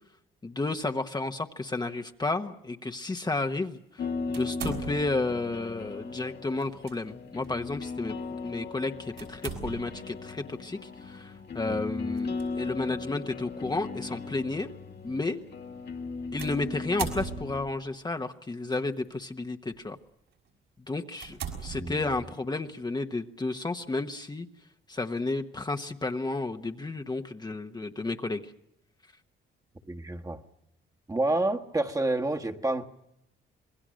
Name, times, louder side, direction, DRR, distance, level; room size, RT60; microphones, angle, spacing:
voice 1, 0.4-8.1 8.4-14.7 15.0-15.4 16.3-20.0 20.9-24.5 24.9-28.5, left 3 dB, 20° left, 1.2 m, -32 dB
sound 1, 4.0-17.7, left 4 dB, 55° left, 2.0 m, -37 dB
sound 2, 4.3-5.3 6.6-7.0 7.4-7.5 9.2-10.1 12.1-12.4 13.3-13.4 16.4-17.8 18.7-19.1 19.7-19.9 20.5-20.6 21.2-22.4, right 7 dB, 80° right, 5.6 m, -39 dB
voice 2, 21.7-22.0 29.9-30.4 31.1-32.9, right 2 dB, 15° right, 1.5 m, -29 dB
27.0 x 20.5 x 6.3 m
cardioid pair, 90°, 20 cm